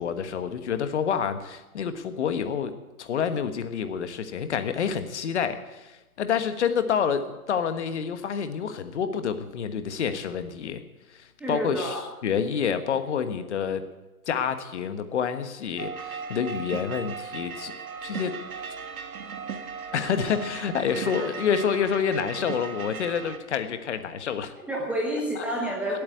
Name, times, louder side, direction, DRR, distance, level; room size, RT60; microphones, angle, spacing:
voice 1, 0.0-2.7 3.0-10.8 11.1-13.8 14.3-17.7 18.0-18.4 19.9-24.5 25.4-25.5, left 7 dB, 50° left, 10 dB, 1.5 m, -28 dB
voice 2, 11.4-12.1 21.0-21.3 24.6-26.0, right 1 dB, 5° right, -2 dB, 1.1 m, -29 dB
sound 1, 15.8-23.4, right 6 dB, 75° right, 1.6 m, -37 dB
15.5 x 8.7 x 9.1 m, 1.1 s
hypercardioid pair, 155°, 44 cm